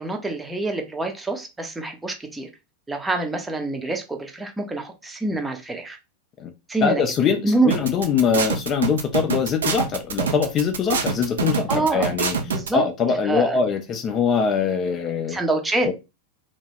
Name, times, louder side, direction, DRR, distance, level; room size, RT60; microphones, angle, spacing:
voice 1, 0.0-2.5 2.9-6.0 6.7-7.0 7.4-7.8 11.7-12.1 12.5-12.8 13.2-13.6 15.3-15.9, right 2 dB, 10° right, 4 dB, 0.6 m, -25 dB
voice 2, 6.8-12.4 12.7-15.4 15.8-15.9, left 6 dB, 30° left, 6 dB, 0.4 m, -23 dB
sound 1, 7.7-12.7, right 5 dB, 65° right, 0.5 m, -25 dB
2.7 x 2.2 x 3.4 m, 0.25 s
figure-of-eight pair, 90°, 0 cm